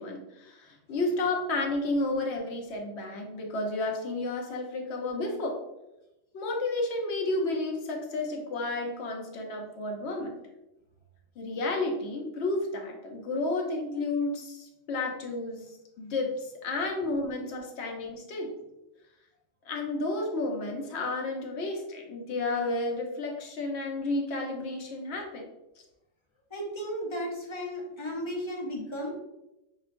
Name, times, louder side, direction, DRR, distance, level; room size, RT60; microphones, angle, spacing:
voice 1, 0.0-5.6 6.3-10.3 11.4-18.5 19.6-25.5, left 2 dB, 60° left, 1 dB, 1.0 m, -31 dB
voice 2, 26.5-29.1, equal, 25° left, -1 dB, 0.7 m, -34 dB
5.6 x 3.1 x 2.5 m, 0.94 s
omnidirectional pair, 1.3 m